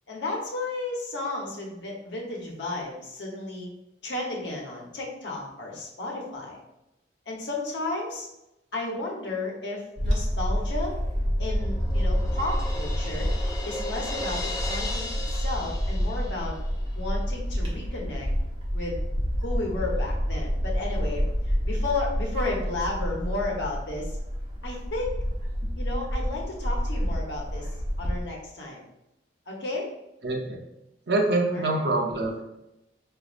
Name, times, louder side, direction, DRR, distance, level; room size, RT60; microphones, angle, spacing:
voice 1, 0.1-3.7 4.0-6.6 7.3-8.3 8.7-11.0 11.4-13.3 13.6-16.6 16.9-18.3 18.7-19.0 19.4-24.2 24.6-25.2 25.8-27.7 28.0-28.8 29.5-29.9 31.5-31.9, left 2 dB, 85° left, -2 dB, 1.0 m, -33 dB
Bird / Wind, 10.0-28.2, equal, 30° right, 1.0 m, -28 dB
Crash cymbal, 11.0-16.8, left 2 dB, 20° left, 0.5 m, -37 dB
voice 2, 30.2-30.6 31.1-32.4, right 2 dB, 65° right, 0 dB, 0.7 m, -25 dB
5.0 x 2.6 x 2.5 m, 0.88 s
head